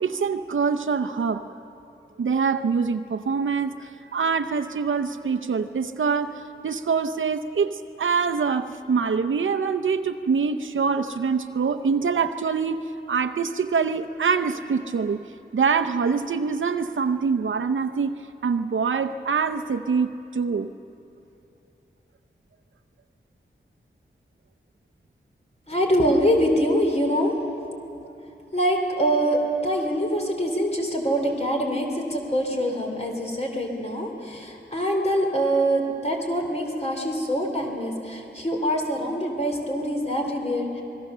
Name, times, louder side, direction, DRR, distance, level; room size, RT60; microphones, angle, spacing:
voice 1, 0.0-1.4 2.2-15.2 15.5-20.7, right 5 dB, 85° right, 8 dB, 0.7 m, -25 dB
voice 2, 25.7-27.3 28.5-40.8, equal, 35° left, 1 dB, 3.2 m, -24 dB
26.5 x 20.5 x 6.8 m, 2.8 s
wide cardioid pair, 90°, 20 cm